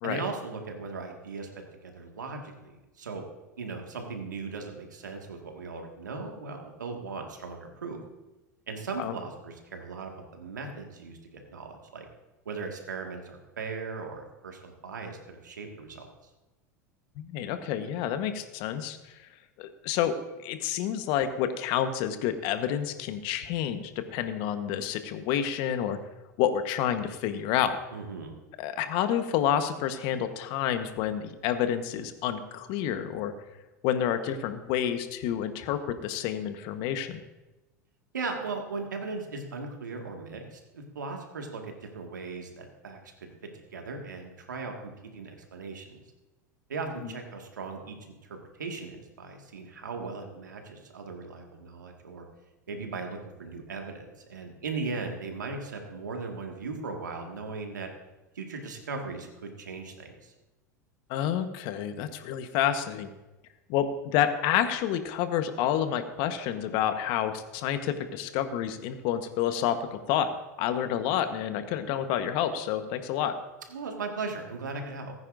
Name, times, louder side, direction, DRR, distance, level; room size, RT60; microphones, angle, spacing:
voice 1, 0.0-3.2 3.6-8.0 8.7-12.1 12.5-16.1 27.9-28.3 38.1-43.3 43.7-46.0 46.7-48.0 48.2-52.3 52.7-57.9 58.4-60.3 73.7-75.1, right 4 dB, 85° right, 3 dB, 1.9 m, -38 dB
voice 2, 17.2-19.1 19.6-26.0 26.4-27.8 28.6-33.3 33.8-37.2 47.0-47.1 61.1-63.1 63.7-70.3 70.6-73.4, left 10 dB, 55° left, 9 dB, 1.2 m, -29 dB
19.0 x 9.7 x 2.6 m, 1.1 s
hypercardioid pair, 90°, 10 cm